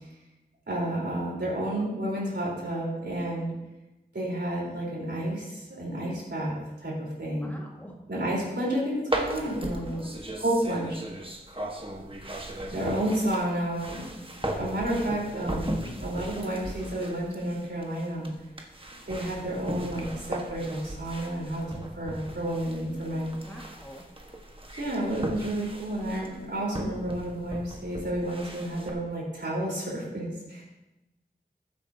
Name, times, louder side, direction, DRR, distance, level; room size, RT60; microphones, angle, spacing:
voice 1, 0.7-3.5 4.1-7.5 8.1-10.1 10.4-11.0 12.7-14.0 14.6-18.3 19.0-21.6 22.0-23.3 24.7-30.6, right 1 dB, 75° right, -5 dB, 3.9 m, -31 dB
voice 2, 7.2-7.9 9.8-10.2 23.4-24.1, equal, 10° left, -1 dB, 1.8 m, -46 dB
sound 1, 9.1-28.9, right 1 dB, 30° right, 1.3 m, -37 dB
14.5 x 8.8 x 2.8 m, 0.97 s
wide cardioid pair, 45°, 18 cm